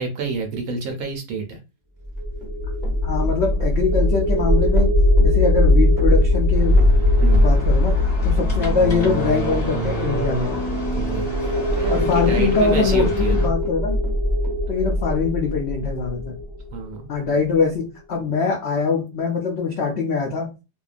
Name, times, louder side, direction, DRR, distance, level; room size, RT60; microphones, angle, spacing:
voice 1, 0.0-1.6 7.2-7.5 10.9-13.5 16.7-17.1, right 4 dB, 70° right, 3 dB, 0.9 m, -29 dB
sound 1, 2.0-17.1, left 1 dB, 10° right, 0.9 m, -20 dB
Run, 2.2-13.4 13.6-14.6, right 1 dB, 45° right, 0.6 m, -41 dB
voice 2, 3.0-4.9 5.2-6.8 7.4-7.9 8.2-10.6 11.9-14.0 14.7-16.4 17.1-20.5, left 4 dB, 75° left, 0 dB, 0.6 m, -23 dB
sound 2, 6.5-13.5, right 2 dB, 30° left, 0.8 m, -29 dB
2.7 x 2.1 x 2.4 m, 0.28 s
omnidirectional pair, 1.8 m